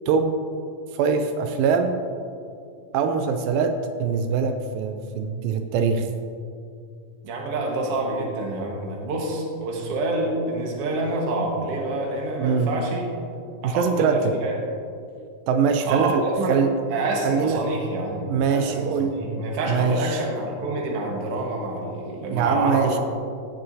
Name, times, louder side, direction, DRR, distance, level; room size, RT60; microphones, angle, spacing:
voice 1, 0.1-0.4 0.9-1.9 2.9-6.1 12.4-12.8 13.6-14.4 15.5-16.2 16.5-16.7 17.2-17.6 18.3-19.2 19.7-20.2 22.3-23.0, right 5 dB, 85° right, 7 dB, 2.2 m, -23 dB
voice 2, 7.2-13.1 13.6-14.6 15.9-16.6 16.9-22.9, right 2 dB, 55° right, -1 dB, 2.0 m, -27 dB
16.0 x 6.8 x 2.7 m, 2.4 s
omnidirectional pair, 4.0 m